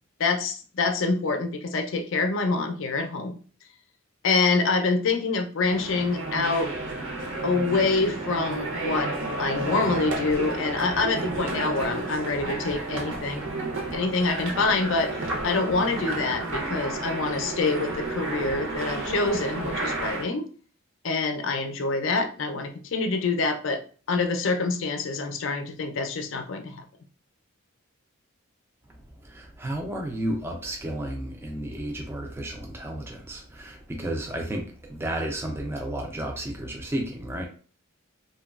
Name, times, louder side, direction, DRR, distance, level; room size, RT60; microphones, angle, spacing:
voice 1, 0.2-3.4 4.2-6.7 7.4-9.1 9.4-13.5 13.9-20.5 21.0-23.8 24.1-26.8, left 3 dB, 60° left, 0.4 m, -26 dB
sound 1, 5.6-20.3, right 2 dB, 60° right, 0.6 m, -31 dB
voice 2, 28.9-37.4, right 1 dB, 10° right, 0.3 m, -32 dB
2.9 x 2.2 x 2.3 m
head